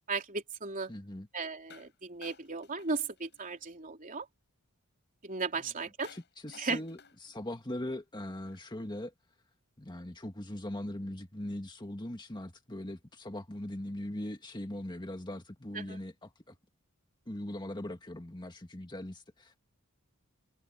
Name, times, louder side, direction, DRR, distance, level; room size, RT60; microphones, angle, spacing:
voice 1, 0.1-0.9 1.3-4.3 5.2-6.1 6.6-6.8 15.7-16.0, right 4 dB, 40° right, 3.5 m, -36 dB
voice 2, 0.9-1.3 6.1-7.0 7.2-9.1 9.8-16.6 17.3-19.6, left 1 dB, 20° left, 1.9 m, -40 dB
sound 1, 1.7-1.9 2.2-3.7 6.0-8.8, left 5 dB, 50° left, 6.9 m, -57 dB
open air
head